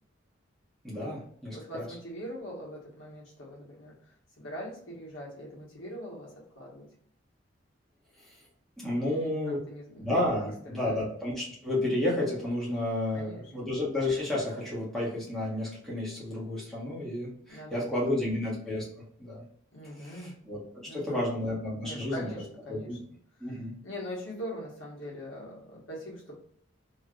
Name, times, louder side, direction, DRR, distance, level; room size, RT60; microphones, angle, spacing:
voice 1, 0.8-1.9 8.2-8.4 8.8-9.6 10.0-18.9 19.2-19.4 19.9-20.6 20.9-22.3 22.7-23.0 23.4-23.8, left 1 dB, ahead, -7 dB, 1.3 m, -31 dB
voice 2, 1.5-4.0 4.4-6.9 8.9-10.1 10.4-11.0 13.1-13.7 17.5-18.4 19.7-20.3 20.9-21.6 21.8-23.0 23.5-26.3, equal, 75° left, -4 dB, 1.4 m, -42 dB
3.1 x 3.1 x 2.5 m, 0.64 s
head